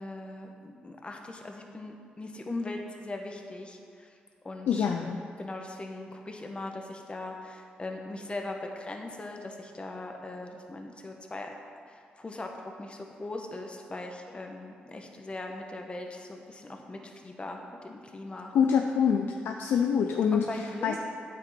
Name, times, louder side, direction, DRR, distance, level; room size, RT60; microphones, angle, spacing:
voice 1, 0.0-4.1 4.4-11.5 11.9-18.5 20.3-21.0, left 2 dB, 30° left, 2 dB, 1.2 m, -40 dB
voice 2, 4.7-5.2 18.5-21.0, left 7 dB, 80° left, 4 dB, 0.4 m, -26 dB
8.9 x 7.5 x 4.4 m, 2.2 s
cardioid pair, 65°, 4 cm